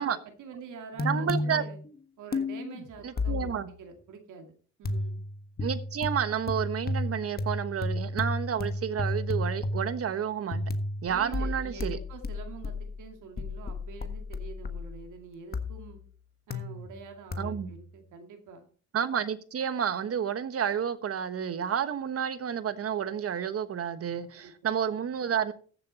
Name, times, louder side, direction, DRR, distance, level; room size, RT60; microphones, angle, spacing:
voice 1, 0.1-1.8 2.2-4.5 4.8-5.2 11.1-16.0 16.5-18.6 24.3-24.5, right 5 dB, 80° right, 2.3 m, -46 dB
sound 1, 1.0-1.9 2.3-3.8 4.8-10.2 10.5-15.1 15.5-16.1 16.5-17.0 17.3-17.8, left 2 dB, 30° left, 1.4 m, -33 dB
voice 2, 1.0-1.6 3.0-3.7 5.6-10.6 11.0-12.0 17.4-17.7 18.9-25.5, right 8 dB, 50° right, 1.2 m, -30 dB
14.5 x 7.6 x 4.2 m
cardioid pair, 90°, 30 cm